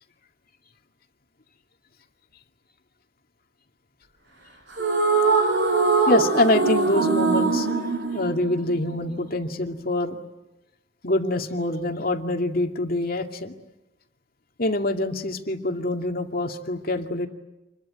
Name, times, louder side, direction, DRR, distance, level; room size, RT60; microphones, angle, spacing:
sound 1, 4.7-9.1, right 4 dB, 65° right, 6.9 m, -22 dB
voice 1, 6.1-7.7 8.1-10.2 11.0-13.5 14.6-17.3, left 2 dB, 50° left, 4 dB, 2.3 m, -25 dB
28.0 x 22.5 x 9.0 m, 0.96 s
head